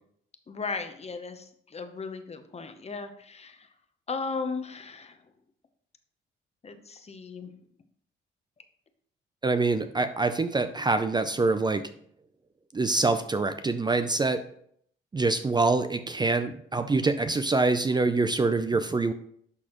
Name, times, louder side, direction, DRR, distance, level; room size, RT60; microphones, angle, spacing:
voice 1, 0.5-3.7 4.1-5.2 6.6-7.5, left 4 dB, 30° left, 8 dB, 0.9 m, -36 dB
voice 2, 9.4-11.8 12.7-14.4 15.1-19.1, right 3 dB, 20° right, 9 dB, 0.5 m, -25 dB
11.0 x 4.0 x 3.0 m, 0.64 s
cardioid pair, 90°, 20 cm